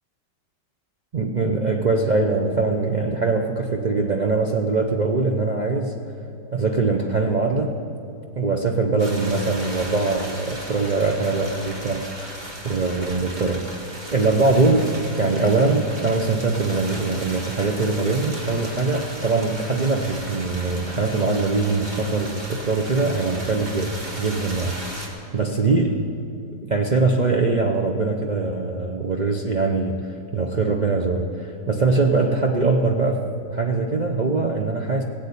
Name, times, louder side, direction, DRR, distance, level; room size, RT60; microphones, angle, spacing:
voice 1, 1.1-5.9 6.5-7.7 8.3-12.1 12.6-24.8 25.3-26.0 26.6-33.2 33.5-35.0, right 3 dB, 70° right, 2 dB, 0.4 m, -22 dB
sound 1, 9.0-25.1, right 1 dB, 25° right, 1.8 m, -36 dB
18.0 x 7.8 x 8.4 m, 2.7 s
omnidirectional pair, 2.0 m